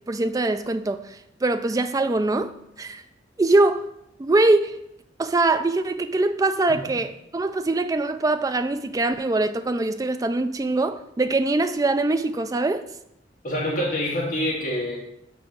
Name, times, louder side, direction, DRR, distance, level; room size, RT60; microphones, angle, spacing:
voice 1, 0.1-2.5 2.8-3.0 3.4-3.8 4.2-4.8 5.2-12.8, right 2 dB, 20° right, 10 dB, 0.3 m, -23 dB
voice 2, 13.4-15.0, left 1 dB, 45° left, -4 dB, 2.2 m, -26 dB
5.7 x 4.3 x 6.1 m, 0.80 s
head